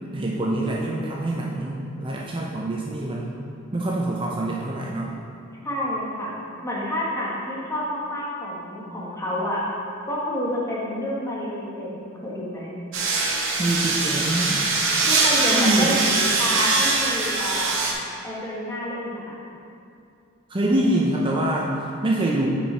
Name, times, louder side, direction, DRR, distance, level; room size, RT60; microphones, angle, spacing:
voice 1, 0.0-3.3 3.7-5.1 13.6-14.6 15.5-15.9 20.5-22.5, right 1 dB, 25° right, -3 dB, 0.5 m, -25 dB
voice 2, 5.6-6.3 6.6-9.6 10.0-12.7 15.0-17.9 18.2-19.4, left 1 dB, 15° left, -6 dB, 1.3 m, -29 dB
sound 1, 12.9-17.9, right 3 dB, 70° right, 0.9 m, -22 dB
6.8 x 4.7 x 4.4 m, 2.5 s
head